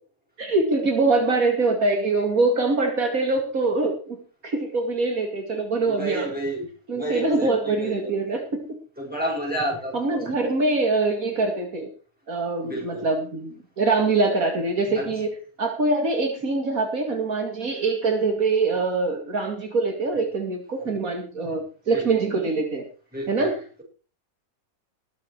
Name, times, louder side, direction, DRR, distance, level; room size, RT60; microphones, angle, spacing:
voice 1, 0.4-6.3 6.9-8.7 9.9-11.9 12.3-15.3 15.6-22.8 23.3-23.5, right 3 dB, 75° right, 4 dB, 2.7 m, -24 dB
voice 2, 5.8-8.4 9.0-10.4 12.6-13.1 14.9-15.1 20.8-21.0 21.4-21.5 21.9-22.1 23.1-23.5, right 1 dB, 5° right, -2 dB, 6.7 m, -31 dB
19.5 x 8.2 x 4.7 m, 0.37 s
omnidirectional pair, 1.5 m